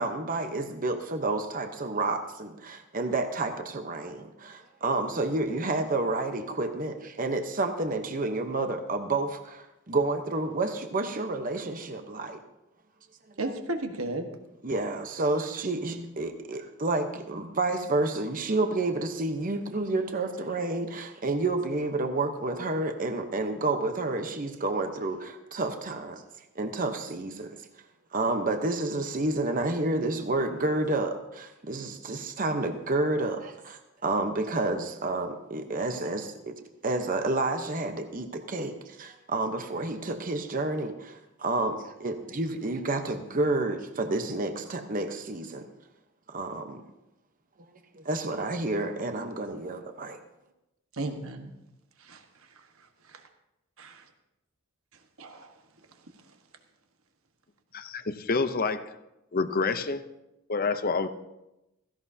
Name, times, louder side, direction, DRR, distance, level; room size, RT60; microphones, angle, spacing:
voice 1, 0.0-12.4 14.6-26.2 26.6-27.6 28.1-45.7 46.3-46.8 47.9-50.2, right 2 dB, 40° right, 6 dB, 0.9 m, -30 dB
voice 2, 13.4-14.3 50.9-51.5 52.0-52.2 53.8-54.0 55.2-55.5, right 2 dB, 65° right, 5 dB, 1.4 m, -33 dB
voice 3, 57.7-58.9 59.3-60.1 60.5-61.1, left 4 dB, 40° left, 10 dB, 0.7 m, -28 dB
16.5 x 15.5 x 2.8 m, 0.92 s
head